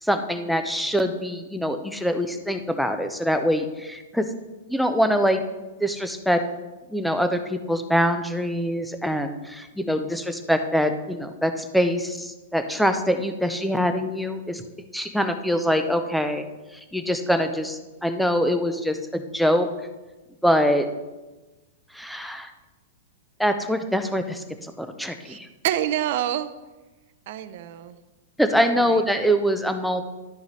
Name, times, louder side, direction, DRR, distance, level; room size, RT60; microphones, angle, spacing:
voice 1, 0.0-4.3 4.7-5.4 5.8-6.4 6.9-14.6 14.9-16.4 16.9-19.7 20.4-20.8 21.9-22.5 23.4-25.5 28.4-30.0, equal, ahead, 7 dB, 0.6 m, -24 dB
voice 2, 25.6-26.5 27.3-28.0 28.6-29.0, right 12 dB, 55° right, 12 dB, 0.6 m, -27 dB
12.0 x 4.9 x 4.1 m, 1.1 s
hypercardioid pair, 145°, 0 cm